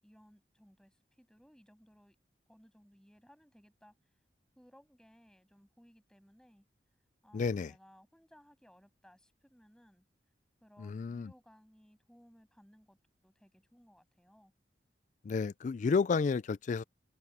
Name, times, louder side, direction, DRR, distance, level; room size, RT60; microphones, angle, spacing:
voice 1, 0.0-2.2 2.5-3.9 4.6-6.7 7.2-10.1 10.6-14.5, equal, 5° left, 7.2 m, -62 dB
voice 2, 7.3-7.7 10.8-11.3 15.2-16.8, left 5 dB, 45° left, 0.3 m, -31 dB
head